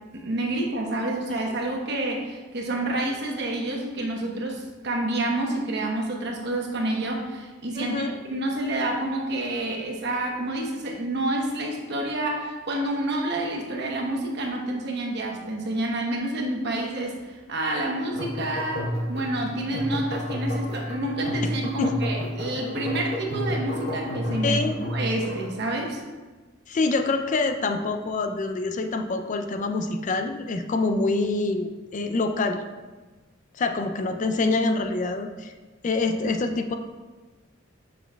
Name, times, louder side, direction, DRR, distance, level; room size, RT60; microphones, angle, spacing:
voice 1, 0.1-24.6 24.9-26.0, right 1 dB, 55° right, 0 dB, 1.0 m, -28 dB
voice 2, 7.8-8.1 21.8-21.9 24.4-24.7 26.7-32.6 33.5-35.5 35.8-36.7, left 3 dB, 40° left, 6 dB, 0.4 m, -26 dB
sound 1, 18.0-25.6, equal, 55° left, 1.1 m, -31 dB
7.1 x 5.9 x 2.3 m, 1.3 s
head